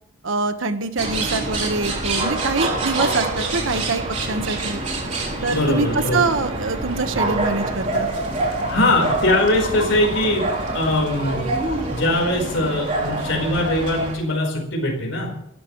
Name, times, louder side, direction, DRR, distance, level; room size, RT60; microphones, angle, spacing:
voice 1, 0.2-4.8 5.4-8.1, right 3 dB, 75° right, 8 dB, 1.4 m, -24 dB
sound 1, 1.0-14.1, right 2 dB, 35° right, 3.5 m, -26 dB
voice 2, 5.5-6.2 8.6-15.3, left 1 dB, 65° left, 0 dB, 4.6 m, -21 dB
27.5 x 13.0 x 3.2 m, 0.76 s
head